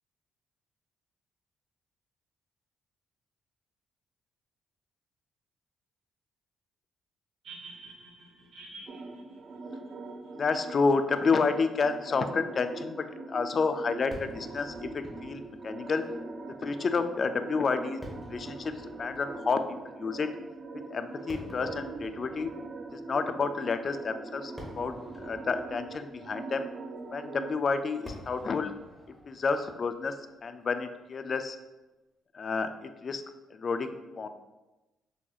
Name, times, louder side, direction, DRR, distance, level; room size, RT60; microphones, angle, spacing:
sound 1, 7.4-10.5 11.4-11.5, right 3 dB, 70° right, 1.0 m, -48 dB
sound 2, 8.9-27.5, right 3 dB, 45° right, 0.5 m, -42 dB
voice 1, 10.4-16.0 16.6-18.0 18.3-18.7 19.0-19.6 20.0-20.3 20.9-22.5 22.9-26.7 27.1-28.7 29.3-30.1 30.4-31.6 32.3-33.2 33.5-34.3, left 4 dB, 45° left, 9 dB, 0.3 m, -30 dB
Fireworks, 14.1-31.4, equal, 5° right, 1.1 m, -51 dB
6.1 x 2.8 x 2.4 m, 1.1 s
cardioid pair, 90°, 0 cm